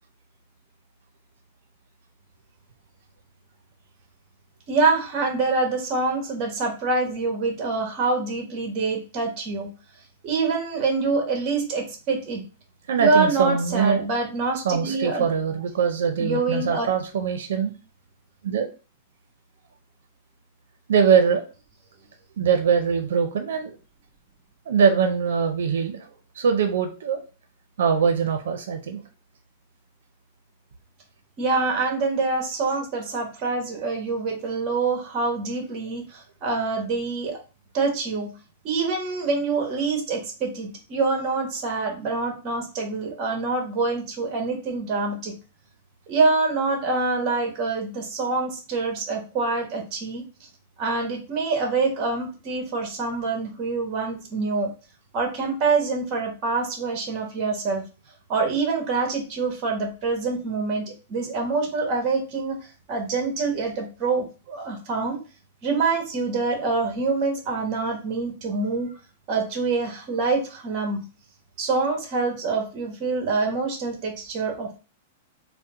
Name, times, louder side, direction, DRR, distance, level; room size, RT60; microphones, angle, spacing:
voice 1, 4.7-9.7 10.2-12.4 13.0-15.3 16.2-16.9 31.4-37.4 37.7-38.3 38.6-45.3 46.1-50.2 50.8-54.7 55.1-57.8 58.3-65.2 65.6-68.9 69.3-71.0 71.6-74.8, right 3 dB, 30° right, 3 dB, 1.1 m, -25 dB
voice 2, 12.9-14.0 14.6-17.7 18.4-18.7 20.9-21.4 22.4-23.8 24.7-26.1 26.4-27.2 27.8-29.0, right 6 dB, 85° right, 6 dB, 0.6 m, -22 dB
4.3 x 2.1 x 3.7 m, 0.34 s
supercardioid pair, 160°, 0 cm